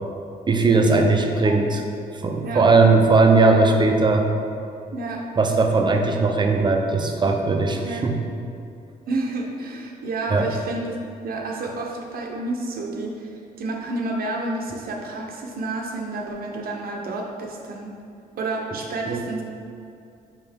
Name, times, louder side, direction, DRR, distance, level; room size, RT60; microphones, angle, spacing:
voice 1, 0.5-1.8 2.2-4.3 5.4-8.2 10.3-10.5 19.1-19.2, right 3 dB, 30° right, 3 dB, 0.6 m, -18 dB
voice 2, 4.9-5.2 7.8-8.1 9.1-11.0 11.2-18.0 18.3-19.4, right 2 dB, 70° right, -1 dB, 0.8 m, -30 dB
5.6 x 5.0 x 3.6 m, 2.5 s
cardioid pair, 105°, 16 cm